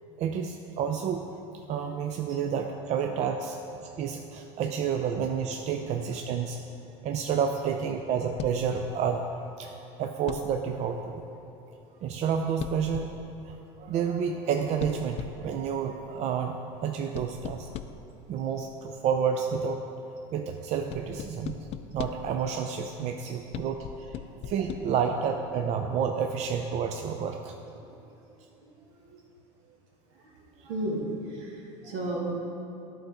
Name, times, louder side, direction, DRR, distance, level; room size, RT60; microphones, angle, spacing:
voice 1, 0.2-1.3 1.5-3.6 3.8-6.6 7.0-9.2 9.6-11.2 12.0-13.1 13.4-17.7 18.3-19.8 20.3-21.7 21.9-27.6, right 7 dB, 50° right, 5 dB, 0.5 m, -30 dB
sound 1, 8.4-8.7 10.3-10.7 12.6-13.3 14.8-15.6 17.1-18.1 20.9-22.4 23.5-24.8, left 10 dB, 45° left, 0.4 m, -39 dB
voice 2, 30.6-32.2, right 1 dB, 75° right, -1 dB, 1.6 m, -34 dB
11.0 x 3.9 x 4.8 m, 2.9 s
hypercardioid pair, 85°, 15 cm